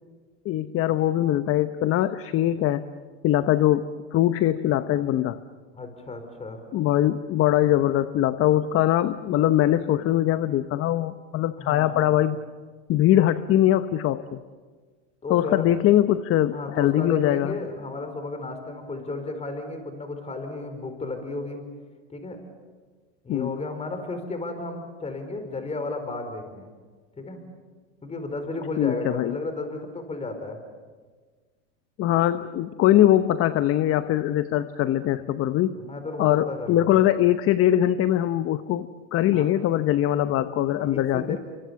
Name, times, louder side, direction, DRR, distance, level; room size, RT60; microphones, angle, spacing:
voice 1, 0.4-2.8 3.2-5.4 6.7-12.4 12.9-14.4 15.3-17.5 23.3-23.6 28.8-29.4 32.0-35.8 36.2-41.4, left 12 dB, 40° left, 12 dB, 0.9 m, -22 dB
voice 2, 5.7-6.6 11.6-12.1 15.2-15.7 16.5-21.6 22.1-22.4 23.2-26.7 27.2-27.4 28.0-30.6 35.8-37.1 39.3-39.5 40.8-41.4, left 2 dB, 15° left, 7 dB, 4.7 m, -33 dB
28.5 x 24.5 x 7.1 m, 1.5 s
supercardioid pair, 115°, 36 cm